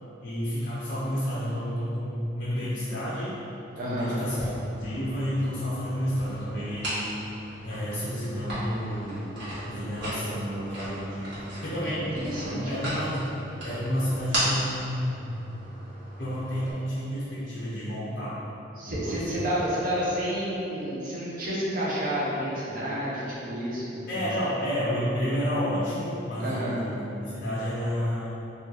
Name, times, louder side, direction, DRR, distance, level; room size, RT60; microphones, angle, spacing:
voice 1, 0.2-3.4 3.8-4.4 4.7-7.0 7.6-9.4 9.7-11.3 11.6-12.2 12.5-13.4 13.6-15.4 16.2-18.4 18.8-19.4 24.1-28.3, equal, 50° left, -9 dB, 0.6 m, -30 dB
voice 2, 3.7-4.2 12.2-12.9 18.8-24.2 26.4-26.8, equal, 45° right, -7 dB, 0.8 m, -30 dB
sound 1, 4.2-16.7, right 1 dB, 70° right, 1.4 m, -37 dB
3.1 x 2.6 x 3.8 m, 3.0 s
head